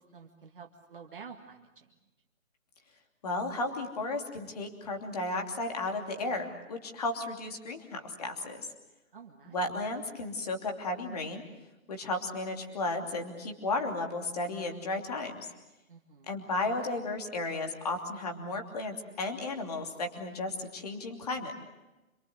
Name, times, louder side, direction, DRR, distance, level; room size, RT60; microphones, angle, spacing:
voice 1, 0.0-1.9 9.1-9.6 15.9-16.5, right 6 dB, 40° right, 1 dB, 1.9 m, -50 dB
voice 2, 3.2-8.6 9.4-11.4 11.9-15.5 16.3-21.5, left 2 dB, 30° left, 4 dB, 2.9 m, -34 dB
27.5 x 23.0 x 8.0 m, 1.0 s
hypercardioid pair, 175°, 41 cm